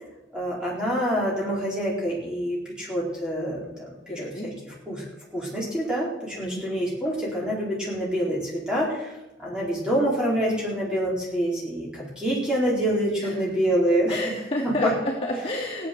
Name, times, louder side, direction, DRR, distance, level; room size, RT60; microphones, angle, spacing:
voice 1, 0.3-5.1 5.3-9.1 9.4-14.3 14.6-14.9, equal, 5° right, -5 dB, 4.4 m, -26 dB
voice 2, 4.1-4.5 6.4-6.7 13.2-13.3 14.0-15.9, left 1 dB, 30° left, -5 dB, 2.9 m, -30 dB
16.5 x 9.4 x 6.8 m, 1.0 s
head